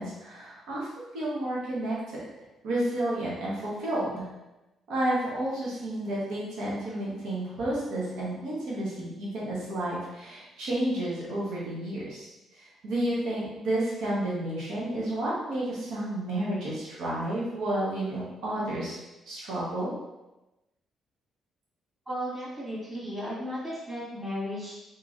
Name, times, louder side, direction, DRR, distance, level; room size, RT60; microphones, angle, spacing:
voice 1, 0.0-2.0 2.6-4.3 4.9-12.3 12.6-19.0 19.3-19.9, right 1 dB, 80° right, -6 dB, 0.8 m, -31 dB
voice 2, 22.1-24.8, equal, 20° right, -8 dB, 1.4 m, -35 dB
3.0 x 2.6 x 2.4 m, 1.0 s
cardioid pair, 90°, 0 cm